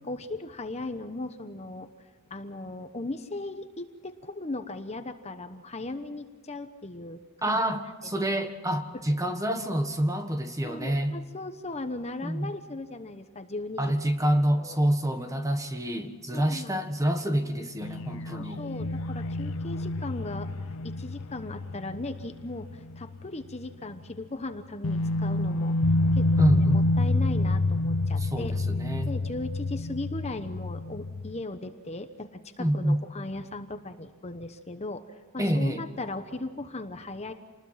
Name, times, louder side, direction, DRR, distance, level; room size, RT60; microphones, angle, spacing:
voice 1, 0.0-1.9 2.3-7.6 8.2-8.4 8.9-9.0 10.6-13.9 14.3-14.8 16.3-16.8 18.3-28.5 29.1-37.3, left 2 dB, 30° left, 8 dB, 1.0 m, -38 dB
voice 2, 7.4-11.1 12.2-12.5 13.8-18.6 26.4-26.9 28.2-29.1 32.6-33.0 35.4-35.8, right 1 dB, 15° right, 7 dB, 1.5 m, -27 dB
sound 1, 17.8-23.2 23.5-23.6 24.8-31.4, left 2 dB, 60° left, 0.7 m, -28 dB
27.5 x 20.5 x 5.9 m, 1.4 s
head